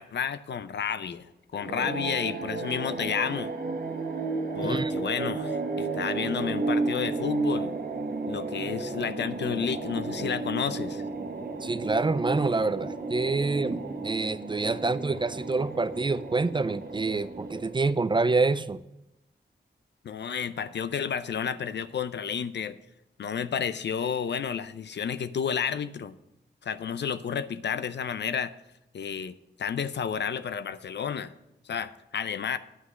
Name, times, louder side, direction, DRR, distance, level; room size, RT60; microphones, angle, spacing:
voice 1, 0.0-3.5 4.6-7.7 8.3-11.0 20.0-22.8 23.2-26.2 26.6-28.5 28.9-31.3 31.7-32.6, left 7 dB, 70° left, 13 dB, 0.6 m, -31 dB
sound 1, 1.5-18.1, right 3 dB, 55° right, 1.4 m, -33 dB
voice 2, 11.6-18.8, right 3 dB, 25° right, 14 dB, 0.4 m, -27 dB
9.8 x 6.0 x 6.4 m, 0.89 s
wide cardioid pair, 85°, 19 cm